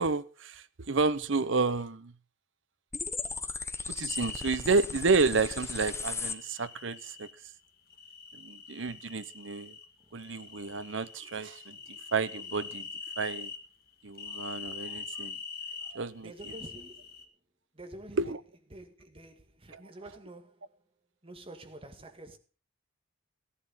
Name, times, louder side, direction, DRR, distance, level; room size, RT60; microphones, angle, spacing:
voice 1, 0.0-2.1 3.9-7.3 8.3-9.8 10.1-12.9 13.2-13.5 14.0-15.4 15.9-16.3 18.2-18.4 19.7-19.8, right 4 dB, 65° right, 0.8 m, -30 dB
sound 1, 2.9-6.3, left 4 dB, 15° left, 1.0 m, -36 dB
sound 2, 4.1-4.6 5.7-7.3 7.9-9.9 10.2-13.6 14.1-15.9 16.4-17.2, left 5 dB, 50° left, 2.1 m, -43 dB
voice 2, 16.2-17.2 17.7-18.2 18.7-20.8 21.2-22.4, right 1 dB, 30° right, 1.9 m, -48 dB
14.5 x 11.5 x 5.5 m
head